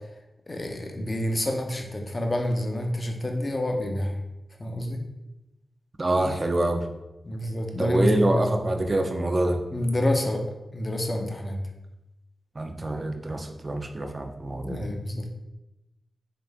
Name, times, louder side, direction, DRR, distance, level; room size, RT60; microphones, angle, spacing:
voice 1, 0.5-4.2 4.6-5.0 7.2-8.5 9.7-10.4 10.7-11.6 14.6-15.3, left 1 dB, 40° left, 3 dB, 0.7 m, -28 dB
voice 2, 6.0-6.9 7.8-9.6 12.6-14.9, right 1 dB, 40° right, 5 dB, 0.6 m, -25 dB
3.9 x 3.3 x 3.5 m, 0.95 s
cardioid pair, 45°, 0 cm